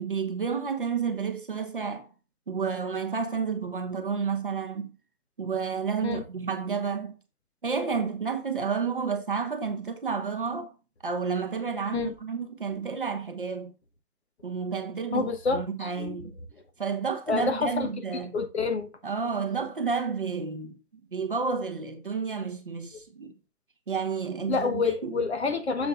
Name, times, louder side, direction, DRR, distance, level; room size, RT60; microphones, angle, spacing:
voice 1, 0.0-2.1 2.5-4.9 5.4-7.2 7.6-10.7 11.0-13.7 14.4-16.3 16.8-18.3 19.0-20.8 21.1-23.3 23.9-25.2, right 5 dB, 35° right, 0.7 m, -30 dB
voice 2, 15.1-16.2 17.3-17.9 18.3-18.9 24.5-25.9, left 4 dB, 45° left, 1.0 m, -28 dB
7.7 x 7.0 x 2.4 m
hypercardioid pair, 170°, 46 cm